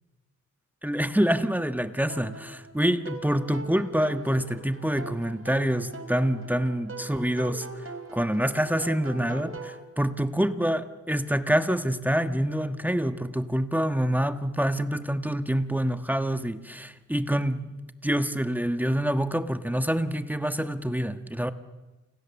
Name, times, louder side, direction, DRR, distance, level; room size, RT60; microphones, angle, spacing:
voice 1, 0.8-7.9 8.1-21.5, equal, 5° right, 1.4 m, -26 dB
sound 1, 2.1-9.8, right 2 dB, 45° right, 3.9 m, -42 dB
30.0 x 28.0 x 7.1 m
cardioid pair, 70°, 31 cm